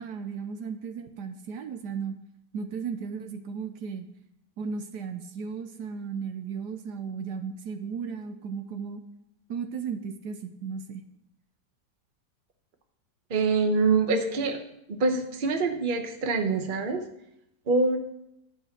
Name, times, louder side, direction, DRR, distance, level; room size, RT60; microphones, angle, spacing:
voice 1, 0.0-2.2 2.5-4.1 4.6-9.0 9.5-11.0, right 6 dB, 75° right, 8 dB, 1.3 m, -35 dB
voice 2, 13.3-14.6 14.9-17.0 17.7-18.0, right 3 dB, 35° right, 5 dB, 1.1 m, -25 dB
11.5 x 5.6 x 7.3 m, 0.82 s
omnidirectional pair, 1.9 m